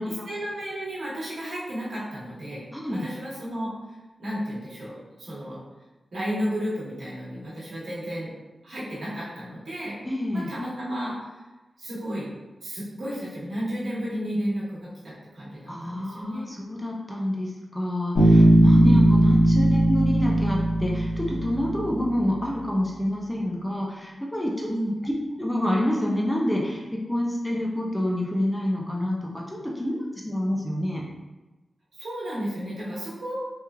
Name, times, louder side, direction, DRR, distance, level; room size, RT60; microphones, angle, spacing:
voice 1, 0.0-3.7 4.2-5.6 6.1-8.3 8.6-9.9 10.3-11.1 11.8-12.3 12.6-16.5 18.9-19.3 24.7-24.9 32.0-33.4, equal, 70° right, -8 dB, 1.0 m, -33 dB
voice 2, 2.7-3.1 10.1-10.5 15.7-24.7 25.0-25.1 25.4-31.1, left 1 dB, 5° left, -3 dB, 0.3 m, -28 dB
Bass guitar, 18.2-21.9, right 1 dB, 80° left, 0.7 m, -18 dB
3.0 x 2.3 x 2.2 m, 1.1 s
wide cardioid pair, 150°, 0 cm